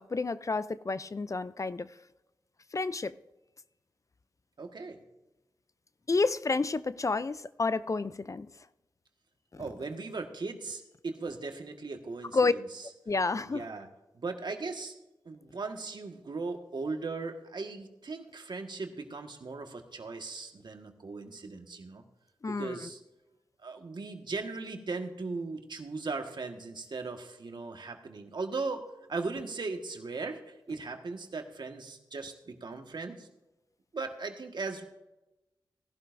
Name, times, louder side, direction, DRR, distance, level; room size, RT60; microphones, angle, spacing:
voice 1, 0.0-1.9 2.7-3.2 6.1-8.5 12.3-12.5 13.1-13.7 22.4-22.8, left 3 dB, 40° left, 15 dB, 0.5 m, -30 dB
voice 2, 4.6-5.0 9.6-12.9 13.5-13.9 14.1-14.9 15.2-22.0 22.5-23.0 23.6-33.3 33.9-34.8, right 3 dB, 65° right, 4 dB, 1.6 m, -38 dB
17.5 x 11.5 x 2.6 m, 0.98 s
cardioid pair, 45°, 8 cm